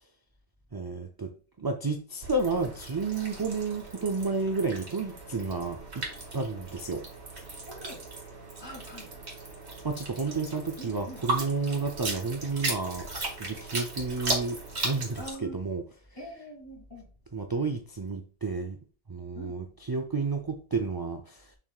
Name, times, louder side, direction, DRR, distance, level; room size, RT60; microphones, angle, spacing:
voice 1, 0.7-6.0 6.3-7.0 9.8-13.1 13.4-14.6 14.8-15.8 17.3-18.8 19.1-21.5, right 3 dB, 35° right, 0.4 m, -31 dB
sound 1, 2.2-15.3, right 2 dB, 70° right, 2.2 m, -37 dB
voice 2, 7.6-8.0 8.6-9.1 10.3-10.4 10.8-11.2 15.2-15.6 16.2-17.1 19.3-19.6, right 1 dB, 20° left, 2.5 m, -43 dB
6.9 x 5.9 x 2.4 m
omnidirectional pair, 1.2 m